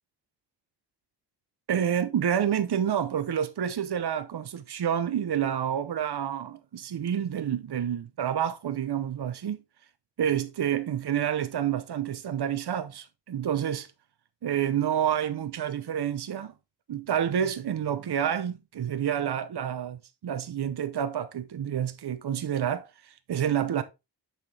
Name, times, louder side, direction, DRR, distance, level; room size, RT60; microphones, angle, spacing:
voice 1, 1.7-9.6 10.2-13.9 14.4-16.5 16.9-23.8, right 9 dB, 75° right, 0.8 m, -28 dB
7.1 x 5.9 x 3.3 m
wide cardioid pair, 80°, 41 cm